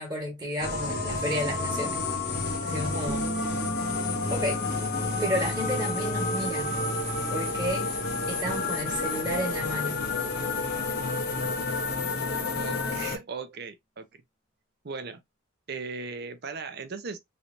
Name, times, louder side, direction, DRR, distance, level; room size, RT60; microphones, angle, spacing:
voice 1, 0.0-2.0 2.6-3.3 4.3-4.6 5.2-6.7 7.3-7.9 8.3-10.1, equal, 20° right, 1.3 m, -32 dB
sound 1, 0.6-13.2, left 3 dB, 50° left, 0.8 m, -30 dB
sound 2, 3.1-8.5, right 3 dB, ahead, 0.7 m, -39 dB
voice 2, 12.5-14.1 14.8-15.2 15.7-17.2, right 4 dB, 50° right, 0.5 m, -37 dB
3.2 x 2.8 x 2.5 m
head